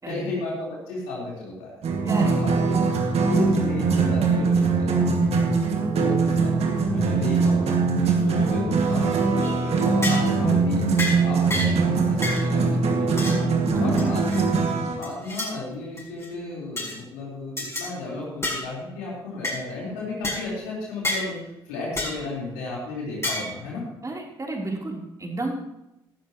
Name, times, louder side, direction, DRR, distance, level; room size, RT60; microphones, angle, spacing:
voice 1, 0.1-1.7 2.3-2.8 3.2-5.2 6.0-6.6 6.9-10.8 11.2-13.5 13.8-14.5 14.8-23.8, left 3 dB, 80° left, -4 dB, 4.3 m, -34 dB
sound 1, 1.8-15.0, right 4 dB, 60° right, 2.1 m, -22 dB
voice 2, 2.0-2.4 5.8-6.0 13.7-14.1 24.0-25.5, right 2 dB, 25° right, -1 dB, 3.7 m, -31 dB
sound 2, 9.4-9.6 10.0-10.3 11.0-11.2 11.5-11.8 12.2-12.5 13.2-13.4 14.0-14.4 15.0-15.5 16.0-16.3 16.8-17.0 17.6-17.9 18.4-18.7 19.4-19.6 20.2-20.4 21.0-21.3 22.0-22.2 23.2-23.5, left 1 dB, 20° left, 5.8 m, -29 dB
16.5 x 12.0 x 3.1 m, 0.90 s
hypercardioid pair, 40°, 12 cm